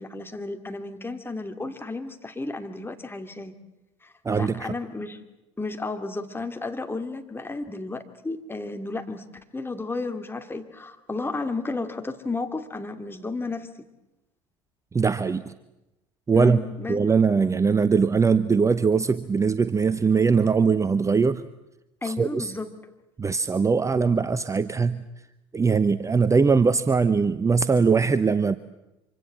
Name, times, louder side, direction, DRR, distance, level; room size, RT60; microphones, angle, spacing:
voice 1, 0.0-3.5 4.0-5.2 5.6-9.3 9.5-13.8 16.3-17.0 22.0-22.7, left 3 dB, 15° left, 7 dB, 2.6 m, -33 dB
voice 2, 4.2-4.7 14.9-15.5 16.3-16.6 16.9-21.4 22.0-22.5 23.2-25.0 25.5-28.6, right 5 dB, 20° right, 15 dB, 0.8 m, -21 dB
26.0 x 25.0 x 7.5 m, 0.96 s
hypercardioid pair, 65°, 16 cm